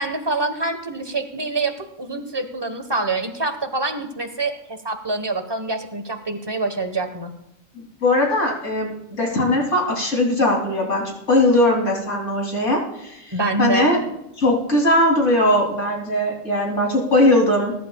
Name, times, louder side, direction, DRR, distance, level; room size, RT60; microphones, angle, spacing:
voice 1, 0.0-7.3 13.3-13.9, right 3 dB, 20° right, 6 dB, 1.3 m, -26 dB
voice 2, 7.8-14.0 14.4-17.7, left 1 dB, 65° left, 0 dB, 3.5 m, -20 dB
22.0 x 11.0 x 2.4 m, 0.85 s
omnidirectional pair, 1.4 m